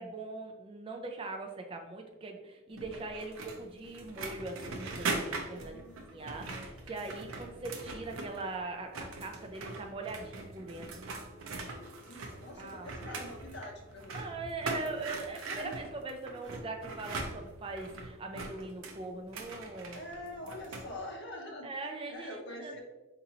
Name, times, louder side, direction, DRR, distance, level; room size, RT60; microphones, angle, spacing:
voice 1, 0.0-5.8 6.1-11.0 12.6-13.0 14.1-20.0 21.6-22.7, right 3 dB, 25° right, 3 dB, 0.4 m, -41 dB
sound 1, 2.8-8.5 8.8-20.9, right 3 dB, 85° right, 0.5 m, -41 dB
voice 2, 5.5-6.4 11.5-14.3 15.3-15.8 19.9-21.7 22.1-22.8, left 1 dB, 55° left, 0 dB, 0.7 m, -45 dB
4.2 x 2.6 x 2.8 m, 1.1 s
head